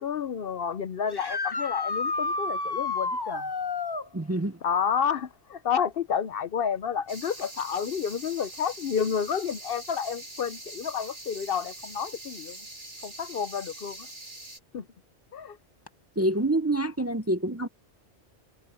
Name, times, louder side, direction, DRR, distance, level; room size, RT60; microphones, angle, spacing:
voice 1, 0.0-3.5 4.6-12.6 13.0-14.1 14.7-14.9 15.3-15.6, left 7 dB, 60° left, 0.8 m, -30 dB
sound 1, 1.1-4.1 7.4-7.5 9.5-9.6 15.9-16.0, left 3 dB, 20° left, 0.9 m, -30 dB
voice 2, 4.1-4.6 16.2-17.7, right 1 dB, 20° right, 0.5 m, -26 dB
sound 2, 7.1-14.6, right 2 dB, 45° right, 4.1 m, -43 dB
omnidirectional pair, 1.2 m